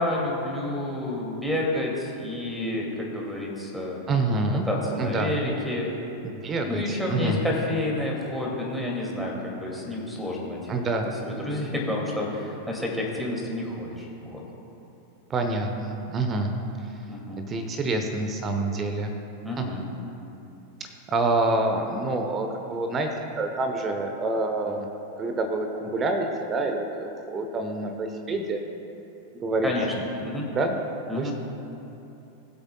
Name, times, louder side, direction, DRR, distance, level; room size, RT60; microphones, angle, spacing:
voice 1, 0.0-4.0 4.7-5.9 6.6-10.6 11.2-14.4 17.1-17.4 19.4-19.9 29.6-29.9 30.2-30.5 31.1-31.3, left 1 dB, ahead, -2 dB, 2.2 m, -29 dB
voice 2, 4.1-4.7 5.0-5.3 6.2-7.4 10.7-11.1 15.3-16.5 17.5-19.1 19.6-19.7 20.8-23.1 23.4-24.9 25.2-28.6 29.3-30.0 30.5-30.8 31.1-31.3, right 2 dB, 25° right, 5 dB, 0.8 m, -27 dB
20.5 x 8.0 x 2.2 m, 2.9 s
figure-of-eight pair, 90°, 0 cm